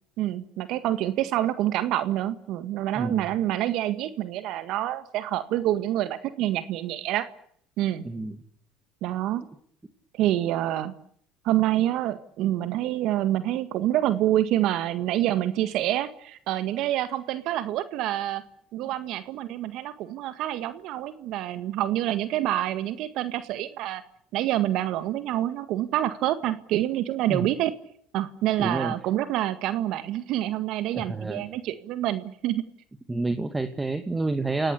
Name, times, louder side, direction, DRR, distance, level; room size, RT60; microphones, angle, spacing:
voice 1, 0.2-7.3 7.8-8.0 9.0-9.4 10.1-10.9 11.4-18.4 18.7-24.0 24.3-27.7 28.1-32.6, right 13 dB, 65° right, 12 dB, 1.8 m, -27 dB
voice 2, 2.9-3.2 8.0-8.3 27.3-27.5 28.6-28.9 30.9-31.4 33.1-34.7, right 2 dB, 15° right, 8 dB, 2.3 m, -28 dB
29.5 x 17.5 x 8.6 m, 0.66 s
hypercardioid pair, 80°, 0 cm